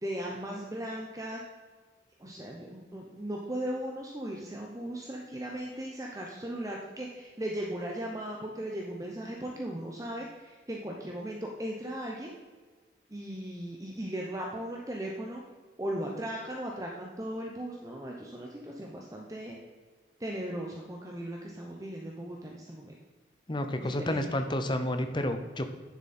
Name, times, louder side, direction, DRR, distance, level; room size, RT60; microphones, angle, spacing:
voice 1, 0.0-1.4 2.2-12.3 13.1-15.4 15.8-19.6 20.2-22.9 23.8-24.2, right 1 dB, 20° right, -1 dB, 0.8 m, -37 dB
voice 2, 23.5-25.7, left 1 dB, 25° left, 7 dB, 0.7 m, -30 dB
10.0 x 7.2 x 4.3 m, 1.4 s
head